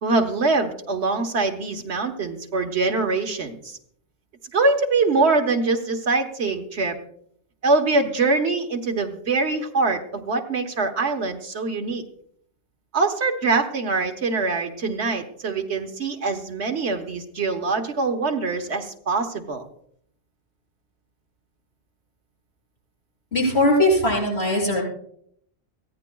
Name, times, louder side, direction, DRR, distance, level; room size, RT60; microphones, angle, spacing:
voice 1, 0.0-3.8 4.5-7.0 7.6-12.0 12.9-19.6, right 3 dB, 75° right, 5 dB, 1.5 m, -23 dB
voice 2, 23.3-24.8, left 1 dB, 70° left, -4 dB, 7.3 m, -20 dB
23.0 x 15.5 x 2.3 m, 0.66 s
omnidirectional pair, 1.1 m